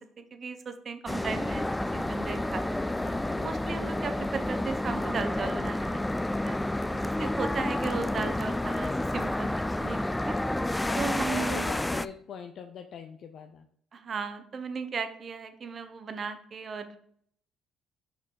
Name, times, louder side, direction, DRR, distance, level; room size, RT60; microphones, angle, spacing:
voice 1, 0.0-1.6 1.9-2.8 3.3-6.0 6.4-10.4 10.9-11.7 13.9-17.0, right 5 dB, 45° right, 9 dB, 0.9 m, -36 dB
sound 1, 1.1-12.1, left 1 dB, 10° left, 0.3 m, -30 dB
voice 2, 3.0-3.5 10.8-13.7, left 7 dB, 60° left, 5 dB, 0.6 m, -41 dB
6.0 x 5.4 x 3.9 m, 0.64 s
cardioid pair, 85°, 0 cm